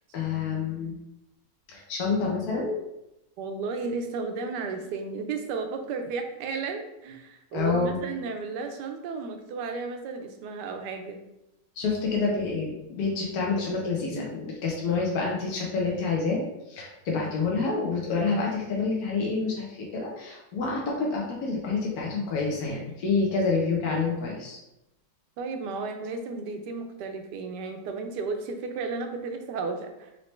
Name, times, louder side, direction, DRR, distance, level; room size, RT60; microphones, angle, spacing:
voice 1, 0.1-1.0 1.7-2.8 7.5-8.0 11.8-16.4 16.7-24.6, left 4 dB, 65° left, -2 dB, 1.1 m, -28 dB
voice 2, 3.4-11.2 25.4-30.1, right 4 dB, 75° right, 5 dB, 1.1 m, -33 dB
4.4 x 2.8 x 3.1 m, 0.90 s
omnidirectional pair, 1.9 m